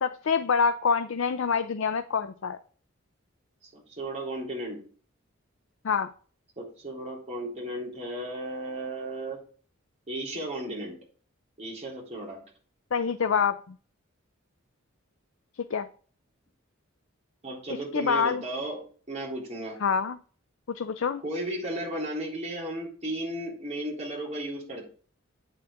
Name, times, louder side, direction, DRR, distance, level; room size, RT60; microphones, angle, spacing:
voice 1, 0.0-2.6 5.8-6.1 12.9-13.6 15.6-15.9 17.9-18.4 19.8-20.2 20.7-21.2, left 6 dB, 75° left, 9 dB, 0.5 m, -26 dB
voice 2, 3.6-4.8 6.6-9.4 10.1-11.0 11.6-12.4 17.4-18.8 19.1-19.8 21.2-24.9, right 1 dB, 35° right, -4 dB, 3.6 m, -34 dB
8.6 x 7.2 x 3.6 m, 0.43 s
head